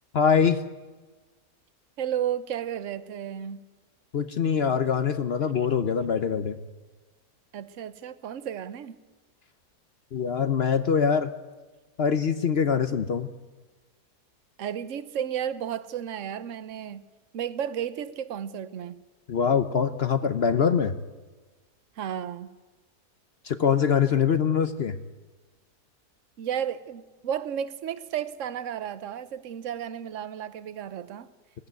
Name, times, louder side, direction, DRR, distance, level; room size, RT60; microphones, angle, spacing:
voice 1, 0.1-0.6 4.1-6.6 10.1-11.3 12.0-13.3 19.3-20.9 23.4-25.0, left 7 dB, 50° left, 0.8 m, -23 dB
voice 2, 2.0-3.6 7.5-9.0 14.6-17.0 17.3-19.0 22.0-22.5 26.4-31.3, right 9 dB, 55° right, 1.1 m, -33 dB
19.5 x 15.5 x 9.4 m
omnidirectional pair, 1.7 m